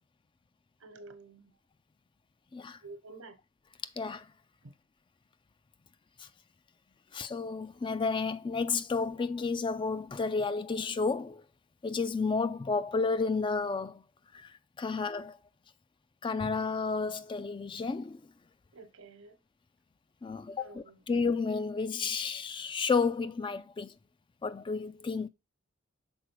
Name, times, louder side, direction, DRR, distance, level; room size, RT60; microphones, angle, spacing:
voice 1, 0.8-1.5 2.8-3.4 4.6-4.7 18.7-19.4 20.6-21.0, right 3 dB, 80° right, 1.1 m, -50 dB
voice 2, 7.1-11.4 11.8-14.0 14.3-14.5 14.8-15.4 16.2-18.2 20.2-23.9 24.4-25.3, left 4 dB, 25° left, 0.3 m, -31 dB
6.2 x 4.1 x 4.6 m
head